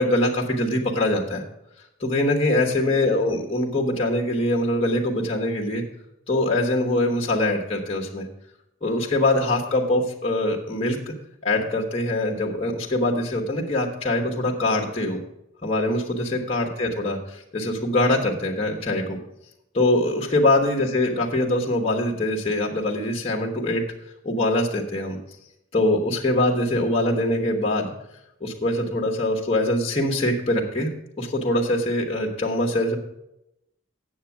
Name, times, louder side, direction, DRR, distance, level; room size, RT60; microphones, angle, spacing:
voice 1, 0.0-1.4 2.0-5.8 6.3-8.3 8.8-11.1 11.4-15.2 15.6-19.2 19.7-23.8 24.2-25.2 25.7-27.9 28.4-30.9 31.2-33.0, left 1 dB, 30° left, 0 dB, 1.2 m, -23 dB
8.6 x 7.1 x 7.1 m, 0.85 s
head